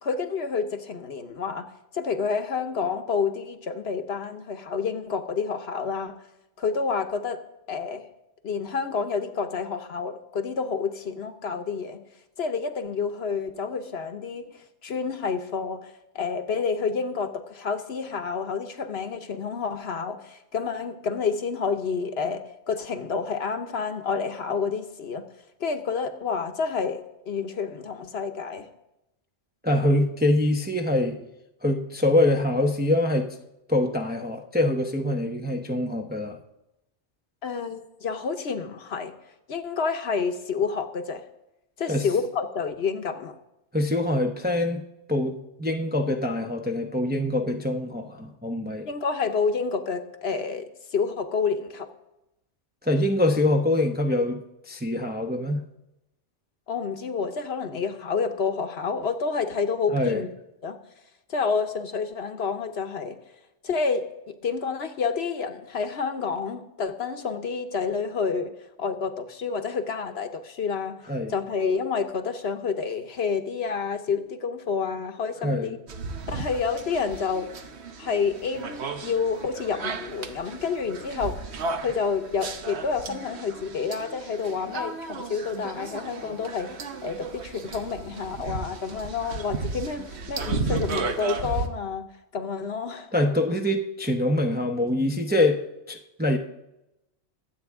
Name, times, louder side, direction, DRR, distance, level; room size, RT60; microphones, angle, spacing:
voice 1, 0.0-1.6 1.9-6.1 6.6-7.4 7.7-8.1 8.4-12.0 12.4-25.2 25.6-28.6 37.4-39.1 39.5-41.2 41.8-43.3 48.8-51.9 56.7-60.3 60.6-60.8 61.3-63.2 63.6-64.0 64.4-68.5 68.8-71.0 71.3-75.8 76.3-77.5 78.0-81.3 81.8-86.7 87.0-92.1 92.3-93.1, left 5 dB, 60° left, 1.1 m, -29 dB
voice 2, 29.6-31.2 31.6-33.4 33.7-36.4 41.9-42.1 43.7-48.9 52.8-55.7 59.9-60.3 71.1-71.3 75.4-75.8 93.1-96.4, left 1 dB, 10° right, 0.6 m, -24 dB
sound 1, 75.9-91.7, right 4 dB, 65° right, 1.2 m, -34 dB
22.0 x 8.3 x 3.6 m
omnidirectional pair, 1.2 m